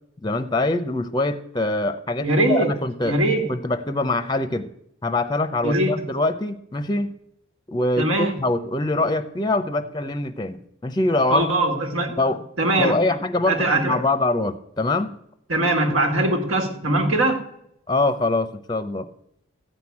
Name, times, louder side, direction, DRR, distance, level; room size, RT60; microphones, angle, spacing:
voice 1, 0.2-3.2 3.5-4.7 5.0-7.2 7.7-11.5 12.2-12.4 12.8-15.2 17.9-19.1, left 2 dB, 20° left, 11 dB, 0.6 m, -24 dB
voice 2, 2.2-2.8 3.0-3.5 5.6-5.9 8.0-8.4 11.3-12.2 12.6-13.2 13.5-14.0 15.5-17.4, right 1 dB, 80° right, 5 dB, 1.8 m, -21 dB
14.0 x 6.0 x 8.5 m, 0.75 s
head